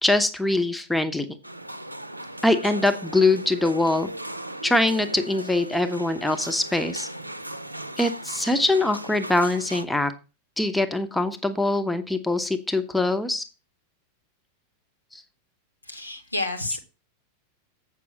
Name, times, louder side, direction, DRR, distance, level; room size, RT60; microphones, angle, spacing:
voice 1, 0.0-1.3 2.4-4.1 4.6-7.1 8.0-10.1 10.6-13.4 15.1-15.2, left 2 dB, 5° left, 1.0 m, -23 dB
sound 1, 1.4-9.8, right 1 dB, 85° right, 0.6 m, -37 dB
voice 2, 15.9-16.8, left 2 dB, 90° left, 1.9 m, -29 dB
7.9 x 6.2 x 6.0 m
figure-of-eight pair, 90°, 0 cm